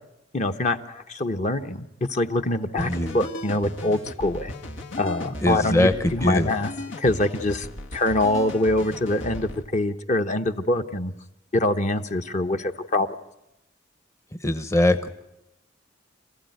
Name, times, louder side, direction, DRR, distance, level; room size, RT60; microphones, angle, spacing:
voice 1, 0.3-4.5 5.0-6.7 7.0-7.7 7.9-11.1 11.5-13.1, left 1 dB, 40° left, 7 dB, 0.9 m, -24 dB
sound 1, 2.8-9.6, left 1 dB, 85° left, 2.1 m, -37 dB
voice 2, 2.8-3.2 5.4-6.5 14.4-15.1, left 1 dB, 15° left, 9 dB, 0.8 m, -22 dB
27.0 x 15.5 x 9.4 m, 0.90 s
head